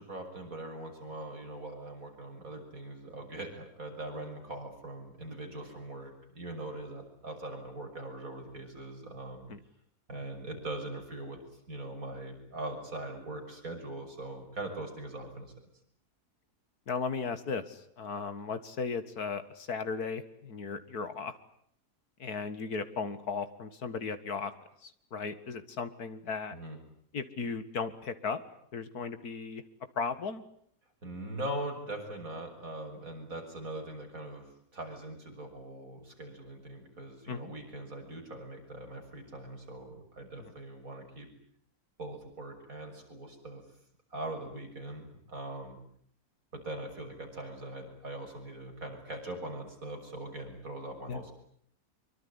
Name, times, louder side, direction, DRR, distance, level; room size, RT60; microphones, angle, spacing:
voice 1, 0.0-9.5 10.1-11.4 11.7-15.5 26.5-26.8 31.0-34.4 34.7-41.3 42.0-43.6 44.1-45.8 46.5-51.3, right 1 dB, 60° right, 2 dB, 7.1 m, -41 dB
voice 2, 16.9-21.3 22.2-24.5 24.8-26.6 27.1-28.4 28.7-29.6 30.0-30.4 37.3-37.5 40.4-40.5 51.1-51.2, left 5 dB, 70° left, 11 dB, 2.4 m, -36 dB
25.0 x 24.0 x 9.9 m, 0.65 s
omnidirectional pair, 1.7 m